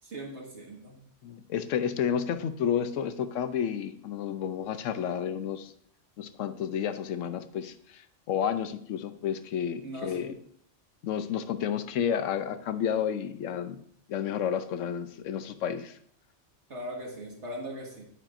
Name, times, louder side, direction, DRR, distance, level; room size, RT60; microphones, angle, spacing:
voice 1, 0.0-1.0 9.8-10.4 16.7-18.0, equal, 65° right, 0 dB, 2.0 m, -39 dB
voice 2, 1.2-5.7 6.2-8.0 8.3-10.3 11.0-13.8 14.1-16.0, left 8 dB, 85° left, 11 dB, 1.0 m, -31 dB
9.2 x 8.8 x 2.6 m, 0.64 s
omnidirectional pair, 1.3 m